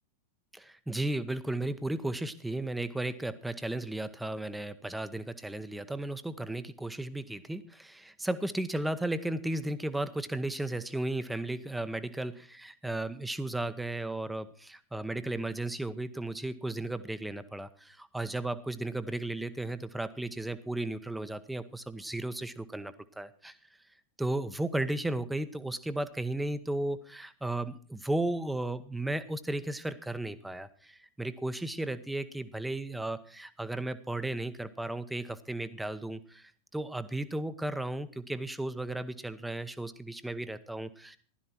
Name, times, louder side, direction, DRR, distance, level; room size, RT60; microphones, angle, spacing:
voice 1, 0.5-23.6 24.2-41.2, right 2 dB, 5° right, 12 dB, 1.0 m, -35 dB
15.5 x 12.0 x 4.4 m, 0.41 s
figure-of-eight pair, 90°, 0 cm